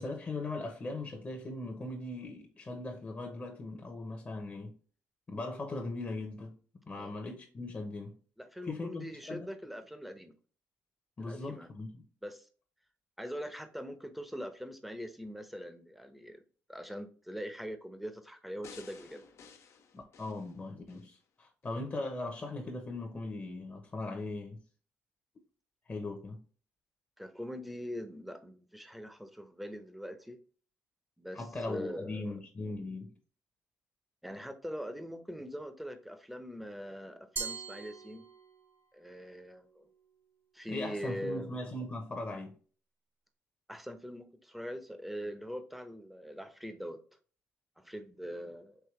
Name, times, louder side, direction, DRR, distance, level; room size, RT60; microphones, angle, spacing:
voice 1, 0.0-4.7 5.3-6.5 6.9-8.2 8.7-9.5 11.2-11.9 19.9-24.6 25.9-26.4 31.3-33.1 40.7-42.6, left 2 dB, 30° left, 1.0 m, -39 dB
voice 2, 8.4-10.4 11.2-11.7 12.2-12.5 13.2-16.4 16.7-19.2 27.2-30.4 31.2-32.4 34.2-38.2 38.9-39.9 40.5-41.5 43.7-47.0 47.8-48.8, equal, ahead, 0.8 m, -42 dB
sound 1, 18.6-21.1 21.6-21.7, left 6 dB, 60° left, 0.8 m, -54 dB
Glass, 37.4-38.8, right 5 dB, 40° right, 1.0 m, -41 dB
4.7 x 3.1 x 3.2 m
supercardioid pair, 65°, 6 cm